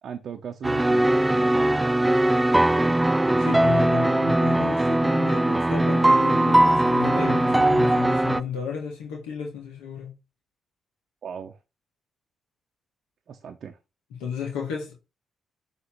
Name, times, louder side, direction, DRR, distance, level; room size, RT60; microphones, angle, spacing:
voice 1, 0.0-2.4 11.2-11.6 13.3-13.8, right 7 dB, 65° right, 0.7 m, -39 dB
sound 1, 0.6-8.4, right 1 dB, 15° right, 0.4 m, -20 dB
voice 2, 3.4-10.1 14.2-15.0, left 6 dB, 85° left, 1.5 m, -32 dB
7.0 x 3.2 x 4.4 m
hypercardioid pair, 45°, 0 cm